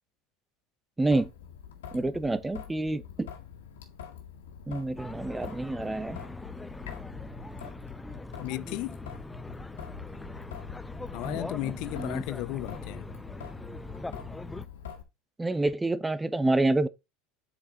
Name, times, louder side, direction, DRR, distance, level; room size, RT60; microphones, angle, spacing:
Traffic noise roadway noise / Drip / Trickle dribble, 1.0-15.0, left 8 dB, 80° left, 1.9 m, -45 dB
voice 1, 1.0-1.3 1.9-3.3 4.7-6.2 11.2-12.2 15.4-16.9, right 2 dB, 10° right, 0.8 m, -28 dB
sound 1, 5.0-14.7, left 2 dB, 10° left, 0.5 m, -42 dB
voice 2, 8.4-8.9 11.1-13.1, left 19 dB, 60° left, 0.5 m, -35 dB
8.1 x 5.9 x 4.0 m
hypercardioid pair, 90°, 0 cm